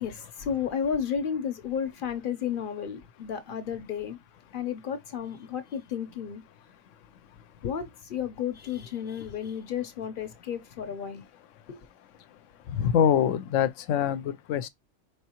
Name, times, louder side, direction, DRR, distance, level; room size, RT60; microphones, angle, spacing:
voice 1, 0.0-4.2 4.5-6.4 7.6-11.2 11.7-11.8, left 8 dB, 50° left, 0.8 m, -32 dB
voice 2, 12.7-14.7, left 9 dB, 85° left, 0.9 m, -24 dB
4.5 x 3.5 x 2.8 m
omnidirectional pair, 1.2 m